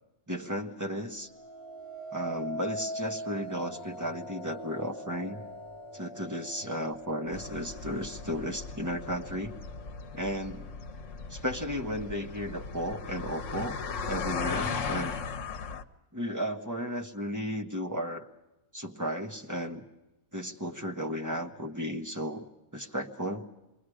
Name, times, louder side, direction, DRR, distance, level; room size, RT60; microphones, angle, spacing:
voice 1, 0.3-1.3 2.1-5.4 5.9-9.5 10.1-10.7 11.3-13.8 14.1-15.2 16.1-18.3 18.7-19.8 20.3-22.4 22.7-23.5, equal, 15° right, 2 dB, 1.3 m, -34 dB
sound 1, 1.2-10.4 10.9-11.4, equal, 25° left, 1.0 m, -42 dB
sound 2, 7.3-15.8, left 5 dB, 65° left, 1.2 m, -37 dB
27.0 x 22.5 x 4.9 m, 0.97 s
omnidirectional pair, 1.4 m